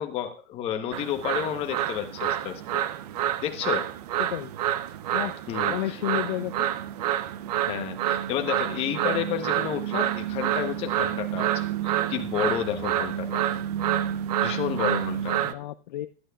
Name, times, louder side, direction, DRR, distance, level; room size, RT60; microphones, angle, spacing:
voice 1, 0.0-2.8 3.4-3.9 5.5-6.0 7.6-13.4 14.4-15.6, left 10 dB, 20° left, 6 dB, 0.9 m, -31 dB
sound 1, 0.9-15.5, right 12 dB, 40° right, 0.5 m, -28 dB
voice 2, 4.2-4.5 5.1-5.3 5.7-6.7 15.4-16.1, left 15 dB, 50° left, 12 dB, 0.4 m, -31 dB
15.0 x 11.5 x 2.3 m, 0.37 s
hypercardioid pair, 155°, 30 cm